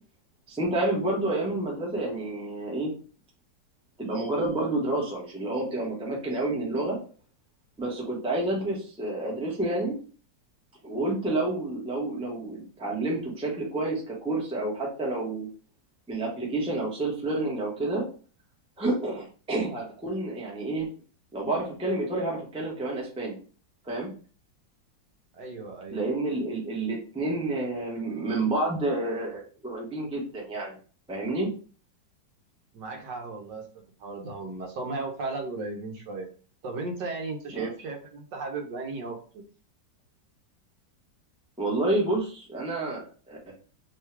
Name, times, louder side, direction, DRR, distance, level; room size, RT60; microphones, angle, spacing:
voice 1, 0.5-2.9 4.0-7.0 7.8-10.0 10.8-15.5 16.1-18.0 18.8-20.9 21.3-23.4 23.8-24.1 25.9-30.8 31.1-31.5 37.5-37.7 41.6-43.5, right 2 dB, 5° right, -3 dB, 0.7 m, -29 dB
voice 2, 25.3-26.1 32.7-33.7 34.0-36.3 36.6-39.4, right 3 dB, 70° right, 2 dB, 1.4 m, -35 dB
3.5 x 2.3 x 4.5 m, 0.39 s
omnidirectional pair, 2.0 m